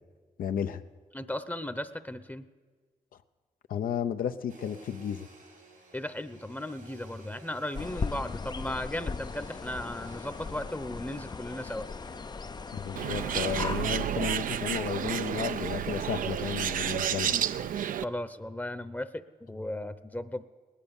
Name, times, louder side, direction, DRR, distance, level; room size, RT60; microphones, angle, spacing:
voice 1, 0.4-0.8 3.7-5.3 12.7-17.4, left 8 dB, 85° left, 9 dB, 0.7 m, -33 dB
voice 2, 1.1-2.5 5.9-11.9 18.0-20.4, left 1 dB, 10° left, 11 dB, 0.8 m, -36 dB
Domestic sounds home sounds, 4.5-17.3, right 1 dB, 90° right, 3.7 m, -55 dB
sound 1, 7.7-13.9, left 4 dB, 30° left, 0.4 m, -38 dB
Bird, 13.0-18.0, right 9 dB, 75° right, 0.5 m, -31 dB
19.0 x 10.0 x 7.1 m, 1.5 s
cardioid pair, 60°, 14 cm